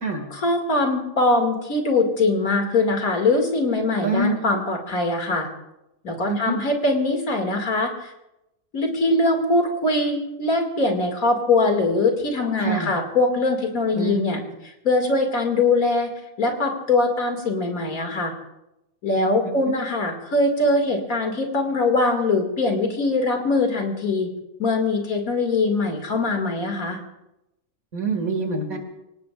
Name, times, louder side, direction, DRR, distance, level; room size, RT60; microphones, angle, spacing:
voice 1, 0.3-5.5 6.0-8.1 8.7-14.4 14.8-16.1 16.4-18.3 19.0-24.3 24.6-27.0, left 2 dB, 75° left, 3 dB, 2.9 m, -22 dB
voice 2, 4.0-4.4 6.3-6.6 12.6-12.9 14.0-14.2 19.2-19.6 27.9-28.8, right 3 dB, 75° right, 4 dB, 2.8 m, -26 dB
24.5 x 18.0 x 2.5 m, 0.90 s
omnidirectional pair, 1.5 m